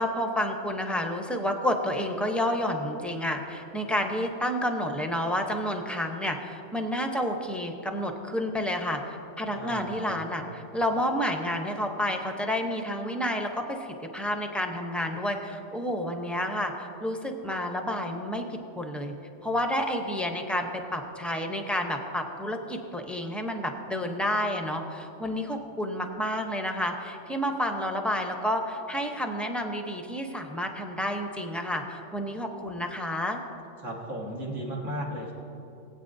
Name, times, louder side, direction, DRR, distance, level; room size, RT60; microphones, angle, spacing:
voice 1, 0.0-10.4 10.7-13.9 14.1-18.5 18.8-19.1 19.4-33.4, equal, ahead, 3 dB, 0.5 m, -30 dB
voice 2, 9.5-10.2 33.8-35.3, equal, 85° right, -2 dB, 2.1 m, -35 dB
20.0 x 8.8 x 2.6 m, 2.9 s
omnidirectional pair, 1.3 m